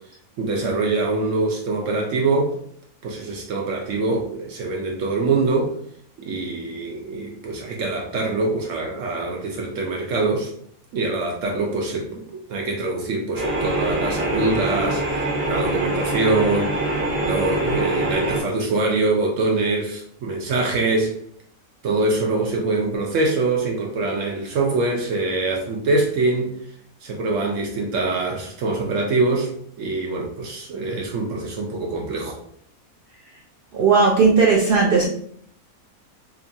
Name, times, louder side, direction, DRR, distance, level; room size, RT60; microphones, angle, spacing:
voice 1, 0.4-2.5 3.0-5.7 6.2-10.5 10.9-12.2 12.5-16.7 17.2-21.1 21.8-26.5 27.0-29.5 29.8-32.4, right 3 dB, 65° right, 0 dB, 0.9 m, -24 dB
sound 1, 13.3-18.4, right 1 dB, 15° right, 0.5 m, -24 dB
voice 2, 33.7-35.1, right 4 dB, 90° right, -3 dB, 0.4 m, -16 dB
2.9 x 2.4 x 2.6 m, 0.64 s
omnidirectional pair, 1.6 m